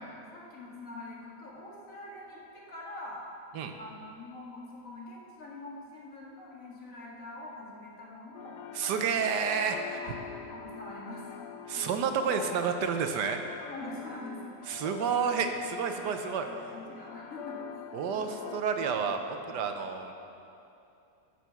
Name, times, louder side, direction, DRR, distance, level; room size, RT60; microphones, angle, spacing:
voice 1, 0.0-3.3 3.8-8.6 9.9-11.9 13.6-14.4 16.7-17.7 18.1-18.2 18.8-18.9, left 2 dB, 50° left, -4 dB, 2.3 m, -44 dB
sound 1, 8.3-18.6, left 9 dB, 85° left, 1.2 m, -45 dB
voice 2, 8.7-10.0 11.7-13.4 14.7-16.5 17.9-20.1, right 6 dB, 85° right, 6 dB, 1.4 m, -30 dB
12.5 x 6.9 x 5.8 m, 2.7 s
omnidirectional pair, 1.8 m